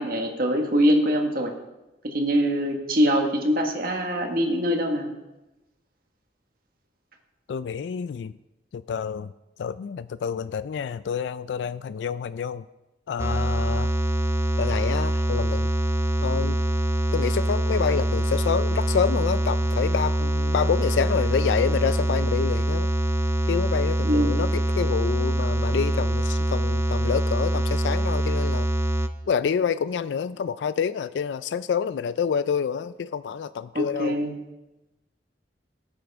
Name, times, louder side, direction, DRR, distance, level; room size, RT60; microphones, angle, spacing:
voice 1, 0.0-1.5 2.1-5.1 24.0-24.3 33.7-34.3, equal, 55° right, 3 dB, 1.6 m, -23 dB
voice 2, 7.5-8.3 8.7-9.3 9.6-12.7 13.1-14.0 14.6-15.7 16.2-16.6 17.1-22.9 23.5-28.7 29.3-34.2, left 7 dB, 85° left, 14 dB, 0.3 m, -27 dB
sound 1, 13.2-29.1, right 1 dB, 15° right, 0.5 m, -24 dB
16.5 x 9.0 x 3.5 m, 1.0 s
head